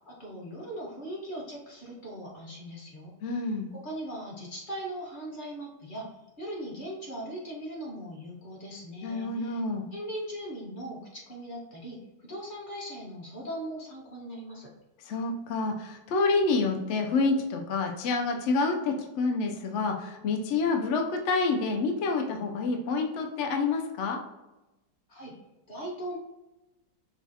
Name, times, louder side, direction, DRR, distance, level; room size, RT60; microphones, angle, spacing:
voice 1, 0.1-3.4 3.7-9.6 9.9-14.7 25.1-25.3 25.7-26.2, right 1 dB, 30° left, -4 dB, 1.2 m, -39 dB
voice 2, 3.2-3.7 9.0-9.9 15.1-24.2, left 3 dB, 70° left, 3 dB, 0.6 m, -28 dB
5.4 x 2.3 x 2.7 m, 1.0 s
omnidirectional pair, 1.8 m